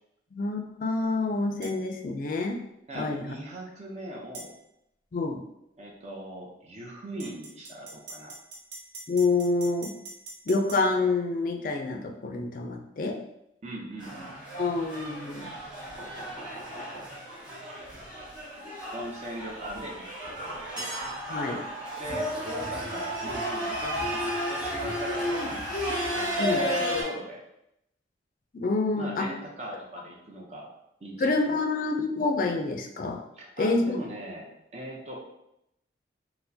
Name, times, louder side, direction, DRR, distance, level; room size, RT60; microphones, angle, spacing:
voice 1, 0.3-2.6 2.9-3.3 5.1-5.4 9.1-9.9 10.5-13.2 14.5-15.5 21.3-21.6 26.4-26.6 28.5-29.3 31.2-33.2 33.6-34.0, left 3 dB, 45° left, 4 dB, 0.4 m, -27 dB
sound 1, 1.6-1.8 4.3-4.5 7.2-10.8, right 3 dB, 65° right, 0.8 m, -43 dB
voice 2, 2.9-4.5 5.8-8.4 13.6-14.3 18.9-20.6 22.0-24.2 24.5-25.6 26.1-27.4 29.0-30.7 31.0-31.6 33.4-35.2, right 1 dB, 35° right, -2 dB, 0.7 m, -40 dB
sound 2, 14.0-27.0, equal, 5° right, 1.4 m, -33 dB
4.3 x 2.1 x 2.7 m, 0.82 s
head